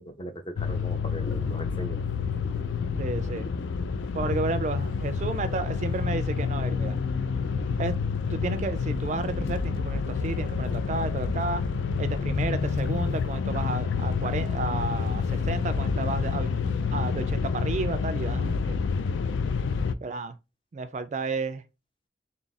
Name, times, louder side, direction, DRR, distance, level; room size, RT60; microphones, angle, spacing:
voice 1, 0.0-2.0, equal, 25° left, 0.5 m, -39 dB
sound 1, 0.6-19.9, left 5 dB, 85° left, 0.4 m, -28 dB
sound 2, 1.1-8.9, left 1 dB, 60° left, 0.8 m, -46 dB
voice 2, 3.0-3.5 4.1-7.0 7.8-8.0 8.3-11.6 12.0-18.8 20.0-20.4 20.7-21.6, right 3 dB, 40° right, 0.3 m, -32 dB
3.6 x 2.4 x 4.0 m
head